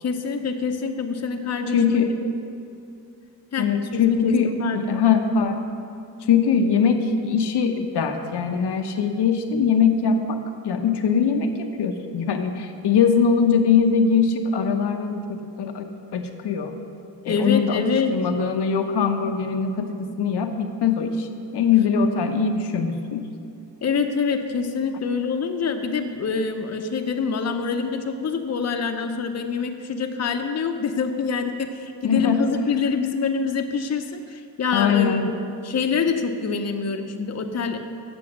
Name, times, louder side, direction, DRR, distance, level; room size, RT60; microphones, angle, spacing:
voice 1, 0.0-2.0 3.5-5.0 17.2-18.1 23.8-35.3 35.6-37.8, left 5 dB, 40° left, 5 dB, 0.7 m, -25 dB
voice 2, 1.7-2.2 3.6-4.5 4.9-5.6 6.3-16.7 17.2-17.8 18.1-21.3 21.5-23.3 32.0-32.4 34.7-35.3, left 6 dB, 70° left, 5 dB, 0.8 m, -21 dB
7.9 x 6.8 x 6.2 m, 2.6 s
cardioid pair, 80°, 42 cm